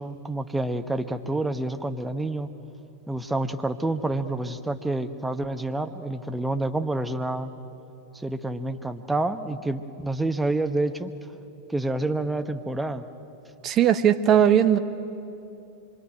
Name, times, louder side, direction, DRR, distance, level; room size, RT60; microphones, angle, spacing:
voice 1, 0.0-2.5 3.1-7.5 8.1-11.1 11.7-13.1, right 2 dB, 5° right, 7 dB, 1.1 m, -28 dB
voice 2, 13.6-14.8, right 9 dB, 30° right, 9 dB, 1.1 m, -18 dB
25.5 x 23.5 x 9.3 m, 2.8 s
figure-of-eight pair, 90°, 0 cm